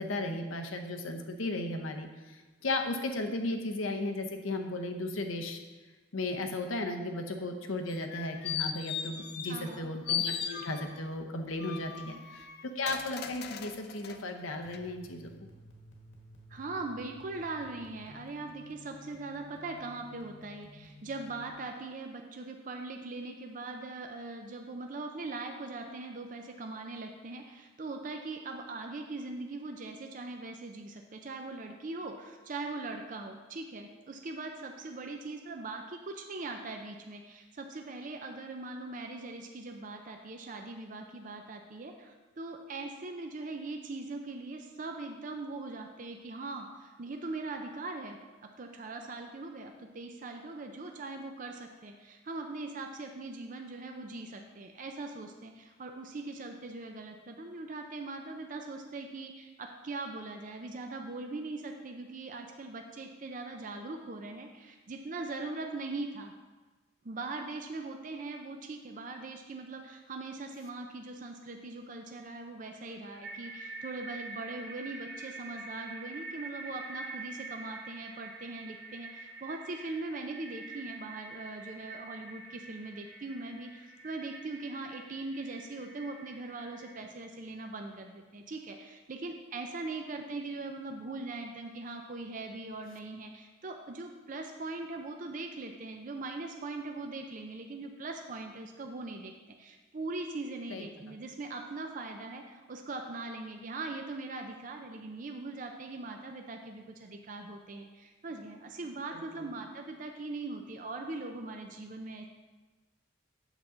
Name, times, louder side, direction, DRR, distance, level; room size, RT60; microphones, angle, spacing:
voice 1, 0.0-5.6 6.1-15.3 100.7-100.9 109.1-109.5, left 2 dB, 90° left, 4 dB, 0.9 m, -35 dB
sound 1, 7.9-9.8 10.1-11.1 11.6-14.2 14.7-14.8, left 8 dB, 55° left, 0.5 m, -37 dB
voice 2, 9.4-9.9 12.0-12.2 16.5-48.2 48.6-66.3 67.0-112.2, right 3 dB, 40° right, 4 dB, 0.5 m, -41 dB
sound 2, 14.6-21.5, left 1 dB, 75° left, 1.4 m, -54 dB
sound 3, 72.7-87.0, right 3 dB, 75° right, 1.7 m, -46 dB
8.1 x 7.0 x 3.8 m, 1.3 s
head